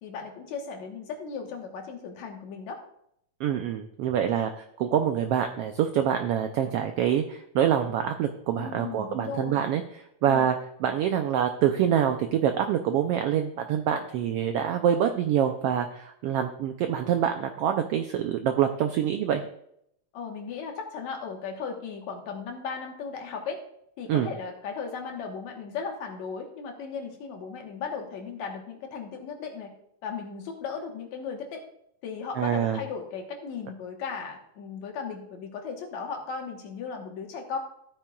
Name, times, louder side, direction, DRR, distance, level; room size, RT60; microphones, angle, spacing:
voice 1, 0.0-2.8 8.6-9.6 10.3-10.5 20.1-23.6 24.0-29.7 30.0-31.6 32.0-37.6, left 5 dB, 75° left, 2 dB, 2.6 m, -36 dB
voice 2, 3.4-9.8 10.2-10.5 10.8-19.4 24.1-24.3 32.4-32.8, right 9 dB, 85° right, 6 dB, 1.3 m, -25 dB
13.5 x 8.9 x 2.3 m, 0.72 s
omnidirectional pair, 3.3 m